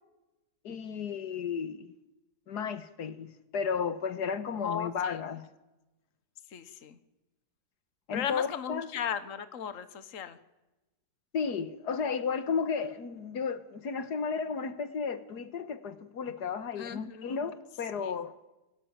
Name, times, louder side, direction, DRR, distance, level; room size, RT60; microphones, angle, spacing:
voice 1, 0.6-1.9 2.5-5.5 8.1-8.9 11.3-18.3, left 6 dB, 85° left, 2.0 m, -33 dB
voice 2, 4.6-5.2 6.5-7.0 8.1-10.4 16.8-17.4 18.0-18.2, left 8 dB, 55° left, 1.6 m, -36 dB
29.0 x 19.0 x 9.0 m
omnidirectional pair, 1.7 m